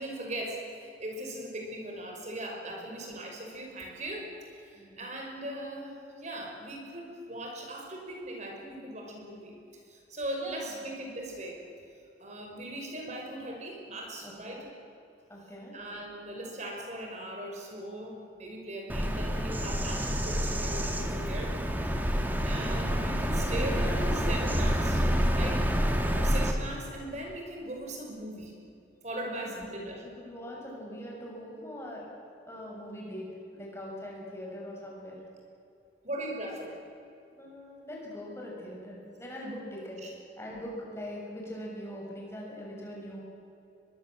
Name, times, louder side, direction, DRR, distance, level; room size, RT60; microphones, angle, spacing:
voice 1, 0.0-9.5 9.9-11.6 12.2-14.6 15.7-21.6 22.4-25.6 26.1-28.5 29.0-30.1 36.0-36.8 40.0-40.1, right 1 dB, 40° right, 1 dB, 5.7 m, -39 dB
voice 2, 4.7-5.1 10.4-10.7 14.2-14.7 15.3-15.8 21.9-22.3 26.0-26.2 29.2-29.7 30.0-32.1 32.5-35.2 37.4-43.2, equal, 15° left, -3 dB, 7.1 m, -42 dB
Bird vocalization bird call bird song, 18.9-26.5, equal, 10° right, 2.1 m, -28 dB
23.5 x 22.5 x 7.6 m, 2.7 s
head